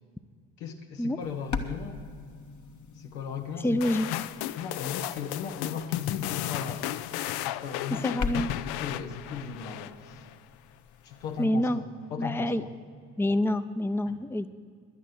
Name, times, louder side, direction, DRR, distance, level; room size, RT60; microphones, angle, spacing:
voice 1, 0.6-2.0 3.0-3.8 4.6-7.0 7.4-8.2 8.6-10.2 11.0-12.7 14.1-14.2, left 6 dB, 85° left, 4 dB, 1.2 m, -37 dB
sound 1, 1.2-11.5, left 4 dB, 45° left, 1.2 m, -41 dB
voice 2, 3.6-4.1 7.9-8.5 11.4-11.8 12.2-12.6 13.2-14.5, left 1 dB, 5° left, 11 dB, 0.6 m, -27 dB
sound 2, 3.8-10.3, left 14 dB, 65° left, 0.5 m, -34 dB
11.0 x 8.5 x 9.4 m, 2.1 s
hypercardioid pair, 50°, 42 cm